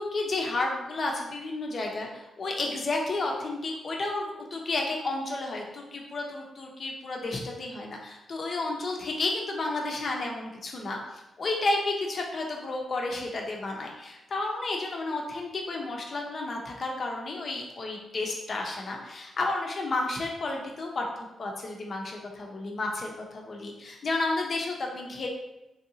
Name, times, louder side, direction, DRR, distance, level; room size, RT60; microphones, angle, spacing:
voice 1, 0.0-25.3, left 2 dB, 55° left, 0 dB, 0.7 m, -32 dB
3.3 x 2.7 x 2.7 m, 0.94 s
cardioid pair, 60°, 0 cm